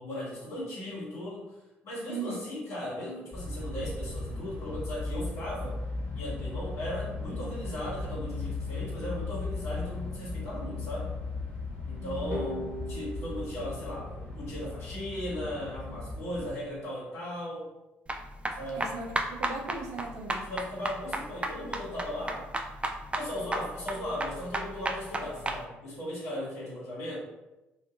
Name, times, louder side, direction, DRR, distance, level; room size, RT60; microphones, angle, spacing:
voice 1, 0.0-1.5 1.8-5.8 6.1-11.1 11.8-17.7 18.6-18.9 20.5-22.5 23.2-27.2, left 1 dB, 55° left, -7 dB, 1.5 m, -37 dB
sound 1, 3.3-16.5, left 3 dB, 20° left, 1.5 m, -37 dB
voice 2, 12.0-12.6 18.7-20.5, right 3 dB, 65° right, 1 dB, 0.6 m, -38 dB
sound 2, 12.3-15.1, equal, 75° left, 0.6 m, -41 dB
sound 3, 18.1-25.6, right 2 dB, 20° right, 0.4 m, -33 dB
2.6 x 2.4 x 2.5 m, 0.99 s
hypercardioid pair, 50°, 6 cm